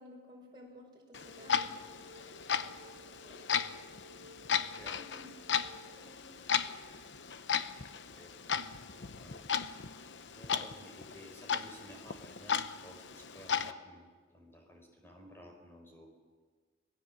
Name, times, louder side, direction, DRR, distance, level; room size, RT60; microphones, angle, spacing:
voice 1, 0.0-1.7 2.7-3.6 4.8-5.3 5.9-6.5, left 1 dB, 25° right, -2 dB, 5.8 m, -55 dB
Clock, 1.1-13.7, left 7 dB, 90° left, 0.9 m, -36 dB
sound 1, 1.1-6.1, equal, 90° right, 1.1 m, -56 dB
voice 2, 8.0-8.6 8.9-9.4 10.3-16.1, equal, 15° left, 2 dB, 4.6 m, -54 dB
26.5 x 19.0 x 7.5 m, 1.5 s
head